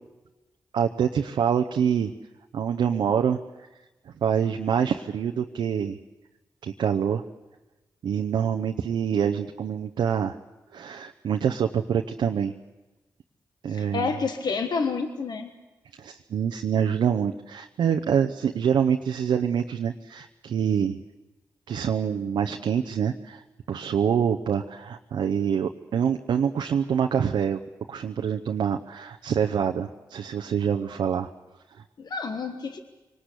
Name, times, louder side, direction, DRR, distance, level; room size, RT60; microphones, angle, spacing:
voice 1, 0.7-2.1 2.5-3.4 4.2-6.0 6.6-7.2 8.0-10.4 10.7-12.5 13.6-14.1 16.0-21.0 21.7-23.4 23.7-27.6 27.9-31.3, right 8 dB, 80° right, 5 dB, 0.8 m, -25 dB
voice 2, 13.7-15.5 32.0-32.8, left 4 dB, 65° left, 7 dB, 1.3 m, -29 dB
24.5 x 19.0 x 8.3 m, 1.1 s
supercardioid pair, 40°, 8 cm